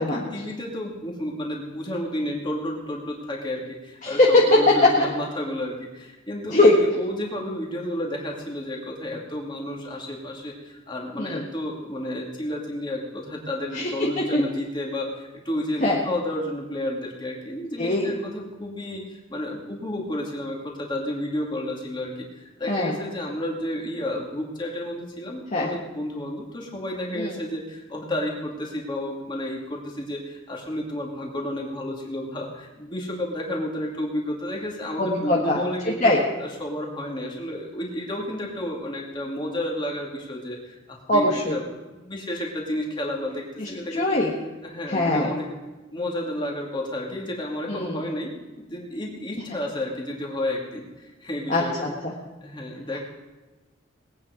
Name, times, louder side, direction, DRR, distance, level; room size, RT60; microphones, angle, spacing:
voice 1, 0.0-36.1 36.4-41.7 41.9-44.2 44.6-45.5 45.9-51.7 52.4-53.0, left 1 dB, 25° left, -1 dB, 2.4 m, -31 dB
voice 2, 17.8-18.1 22.7-22.9 25.5-25.7 27.2-27.3 35.0-35.6 36.0-36.2 41.1-41.5 43.6-44.3 44.9-45.3 47.7-48.0 51.5-51.6, left 1 dB, 40° left, -3 dB, 1.5 m, -21 dB
20.0 x 9.1 x 5.1 m, 1.2 s
head